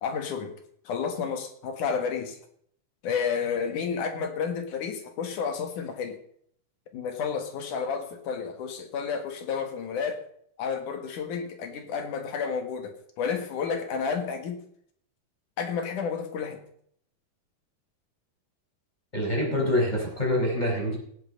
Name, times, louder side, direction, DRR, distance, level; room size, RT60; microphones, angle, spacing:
voice 1, 0.0-0.5 0.9-2.4 3.0-6.2 6.9-10.2 10.6-14.6 15.6-16.6, left 6 dB, 70° left, 6 dB, 3.1 m, -31 dB
voice 2, 19.1-21.0, left 1 dB, 10° left, -1 dB, 4.5 m, -25 dB
17.0 x 8.0 x 5.4 m, 0.65 s
omnidirectional pair, 3.7 m